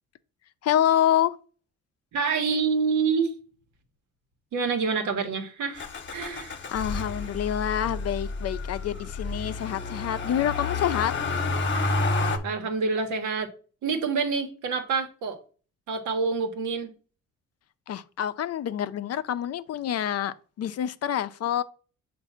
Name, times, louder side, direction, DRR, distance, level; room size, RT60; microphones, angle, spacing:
voice 1, 0.6-1.4 6.7-11.1 17.9-21.6, left 10 dB, 55° left, 0.5 m, -27 dB
voice 2, 2.1-3.3 4.5-6.6 12.4-13.5 13.8-15.4 15.9-16.9, right 5 dB, 80° right, 1.2 m, -27 dB
Motor vehicle (road), 5.8-12.4, left 3 dB, 40° left, 1.0 m, -30 dB
6.9 x 2.6 x 5.7 m
cardioid pair, 90°, 30 cm